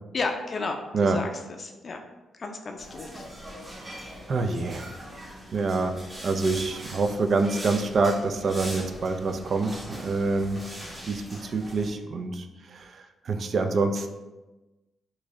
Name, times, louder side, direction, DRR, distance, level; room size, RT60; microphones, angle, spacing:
voice 1, 0.1-1.3 1.6-2.0 2.3-3.3 4.4-4.7, left 3 dB, 50° left, 4 dB, 0.4 m, -33 dB
sound 1, 2.8-11.9, equal, 25° right, 1.0 m, -41 dB
voice 2, 4.3-4.9 5.5-10.6 11.1-14.1, right 3 dB, 55° right, 7 dB, 0.4 m, -26 dB
3.0 x 2.5 x 3.6 m, 1.1 s
cardioid pair, 65°, 0 cm